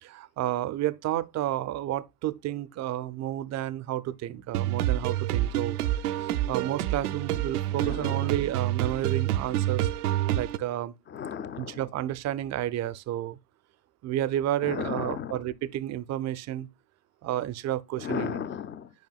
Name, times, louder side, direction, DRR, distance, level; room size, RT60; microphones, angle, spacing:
voice 1, 0.0-5.8 6.2-9.9 10.3-10.9 11.6-13.4 14.0-16.7 17.2-18.4, right 13 dB, 40° right, 0.6 m, -31 dB
sound 1, 4.5-10.6, right 13 dB, 85° right, 0.6 m, -28 dB
voice 2, 7.7-8.3 11.1-11.8 14.6-15.4 18.0-18.9, left 8 dB, 25° left, 0.6 m, -35 dB
9.3 x 5.2 x 2.3 m
hypercardioid pair, 85°, 44 cm